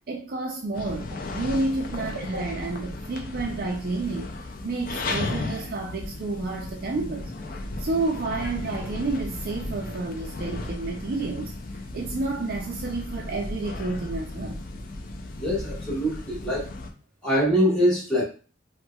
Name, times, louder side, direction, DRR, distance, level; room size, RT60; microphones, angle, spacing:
voice 1, 0.1-1.1 1.3-4.3 4.6-7.3 7.8-11.5 11.9-14.6, right 3 dB, 50° right, 0.4 m, -30 dB
sound 1, 0.7-16.9, left 2 dB, 45° left, 0.4 m, -35 dB
voice 2, 15.4-16.7 17.2-18.2, equal, 5° left, 1.3 m, -23 dB
4.2 x 2.1 x 2.2 m
head